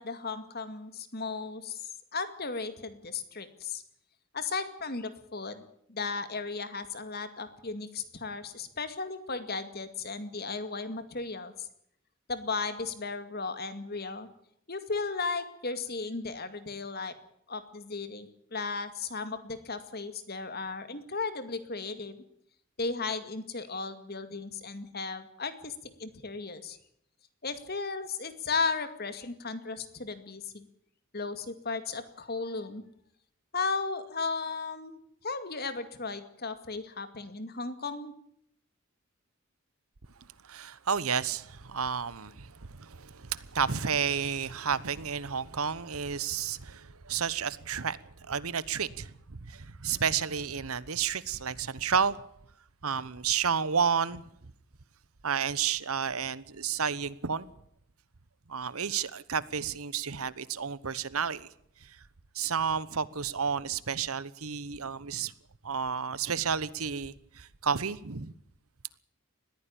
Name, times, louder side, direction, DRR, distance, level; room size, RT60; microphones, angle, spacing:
voice 1, 0.0-3.8 4.3-5.6 5.9-11.7 12.3-14.3 14.7-17.1 17.5-22.2 22.8-25.7 26.0-26.8 27.4-30.7 31.1-32.8 33.5-38.1, left 4 dB, 45° left, 2.2 m, -35 dB
voice 2, 40.4-52.2 52.8-54.2 55.2-57.5 58.5-61.5 61.8-62.0 62.3-65.3 65.6-68.3, right 6 dB, 80° right, 1.1 m, -31 dB
20.5 x 15.0 x 8.8 m
head